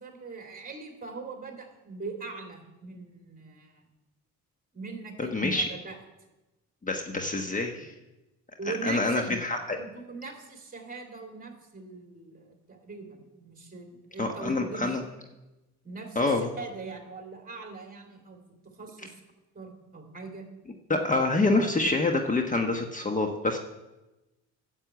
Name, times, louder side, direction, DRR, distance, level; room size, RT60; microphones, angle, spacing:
voice 1, 0.0-3.9 4.7-6.0 7.1-7.3 8.6-9.3 9.8-15.0 15.8-18.4 18.6-19.2 19.5-20.5, right 4 dB, 30° right, 3 dB, 3.2 m, -41 dB
voice 2, 5.2-5.7 6.8-7.9 8.7-9.8 14.2-15.0 16.1-16.5 20.9-23.6, left 2 dB, 25° left, 4 dB, 1.1 m, -26 dB
9.9 x 7.4 x 8.2 m, 1.0 s
cardioid pair, 85°, 31 cm